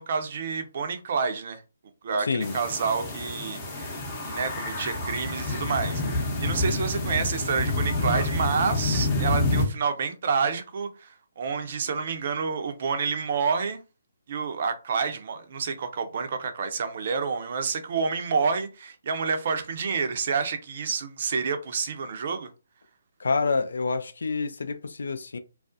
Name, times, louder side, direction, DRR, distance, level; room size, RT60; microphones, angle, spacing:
voice 1, 0.0-1.6 2.0-4.0 4.3-13.8 14.3-22.5, right 5 dB, 50° right, 0.5 m, -29 dB
voice 2, 2.2-2.6 23.2-25.4, left 4 dB, 65° left, 0.4 m, -27 dB
sound 1, 2.4-9.6, left 2 dB, 20° left, 0.7 m, -28 dB
2.4 x 2.0 x 2.5 m
figure-of-eight pair, 140°, 0 cm